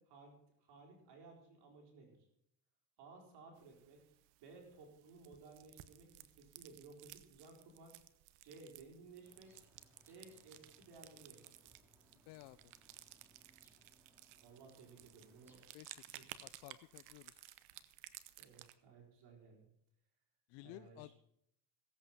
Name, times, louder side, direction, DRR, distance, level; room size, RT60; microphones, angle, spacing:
voice 1, 0.0-2.3 3.0-4.0 4.4-8.0 8.4-9.5 10.1-11.7 14.4-15.6 16.2-16.4 17.7-17.9 18.4-19.7 20.6-21.1, right 4 dB, 70° right, 1 dB, 4.5 m, -58 dB
sound 1, 3.6-18.7, right 15 dB, 90° right, 0.9 m, -58 dB
sound 2, 9.2-15.7, equal, 5° right, 3.5 m, -71 dB
voice 2, 12.3-12.7 15.7-17.5 20.5-21.1, left 19 dB, 80° left, 14 dB, 0.5 m, -55 dB
16.5 x 8.3 x 5.9 m, 0.74 s
supercardioid pair, 85°, 41 cm